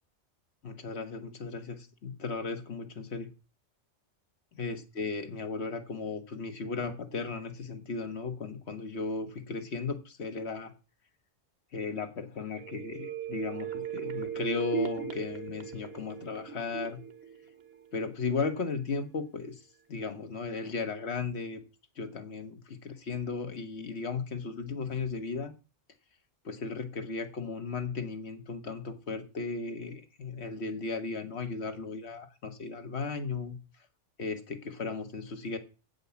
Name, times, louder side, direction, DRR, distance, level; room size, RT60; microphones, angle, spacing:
voice 1, 0.6-3.3 4.5-10.7 11.7-17.0 17.9-19.6 19.9-21.6 22.0-25.5 26.4-33.6 34.2-35.6, left 4 dB, 65° left, 7 dB, 1.4 m, -36 dB
sound 1, 12.5-18.2 18.6-18.7, right 8 dB, 55° right, 1.3 m, -38 dB
8.3 x 5.3 x 6.8 m, 0.31 s
omnidirectional pair, 1.2 m